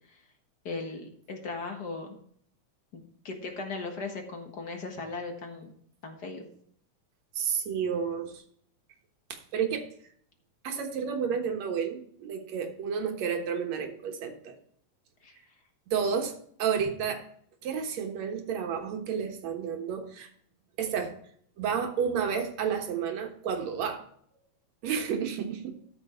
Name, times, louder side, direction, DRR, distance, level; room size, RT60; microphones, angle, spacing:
voice 1, 0.6-2.2 2.9-5.7 6.0-6.5 15.2-15.3, left 3 dB, 45° left, 3 dB, 1.5 m, -38 dB
voice 2, 7.3-8.4 9.3-9.8 10.6-14.5 15.9-17.2 17.6-20.3 20.8-21.1 21.6-24.0 24.8-25.7, right 7 dB, 65° right, 4 dB, 2.5 m, -31 dB
13.5 x 6.1 x 4.4 m, 0.62 s
omnidirectional pair, 3.6 m